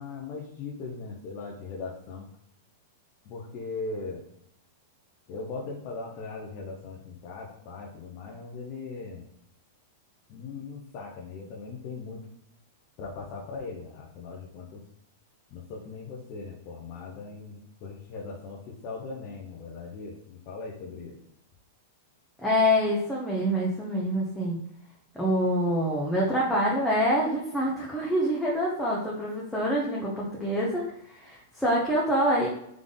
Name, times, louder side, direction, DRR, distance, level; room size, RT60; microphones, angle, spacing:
voice 1, 0.0-2.3 3.2-4.2 5.3-9.3 10.3-12.2 13.0-14.8 15.5-21.2, left 4 dB, 45° left, -3 dB, 1.0 m, -39 dB
voice 2, 22.4-24.6 25.1-32.5, equal, 5° left, -6 dB, 1.1 m, -26 dB
3.8 x 3.4 x 3.8 m, 0.76 s
hypercardioid pair, 105°, 0 cm